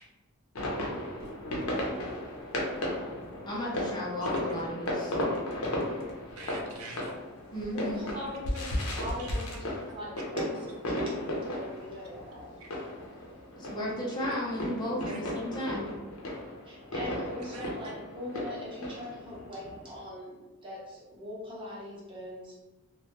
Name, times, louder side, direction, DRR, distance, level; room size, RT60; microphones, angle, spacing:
sound 1, 0.6-20.0, left 1 dB, 70° left, 0.6 m, -35 dB
voice 1, 3.5-5.2 7.5-8.2 13.6-15.9, left 1 dB, 20° left, -5 dB, 0.5 m, -34 dB
voice 2, 6.4-7.5 9.2-9.4 12.6-12.7 13.5-13.7 15.1-15.2 17.5-17.9, right 3 dB, 80° right, 0 dB, 0.5 m, -48 dB
voice 3, 7.7-8.7 9.0-10.5 10.9-12.5 16.6-22.5, left 1 dB, 25° right, -7 dB, 0.8 m, -41 dB
2.2 x 2.1 x 2.8 m, 1.1 s
head